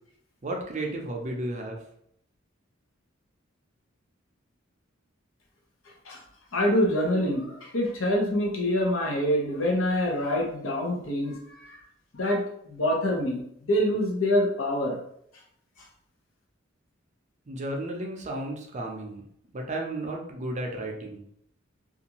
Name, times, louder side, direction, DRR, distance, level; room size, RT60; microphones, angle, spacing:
voice 1, 0.4-1.8 17.5-19.2 19.5-21.2, right 1 dB, 35° right, 1 dB, 0.5 m, -33 dB
voice 2, 6.5-11.8 12.1-15.0 15.8-15.9, left 1 dB, 75° left, -1 dB, 0.8 m, -26 dB
2.6 x 2.4 x 2.9 m, 0.70 s
head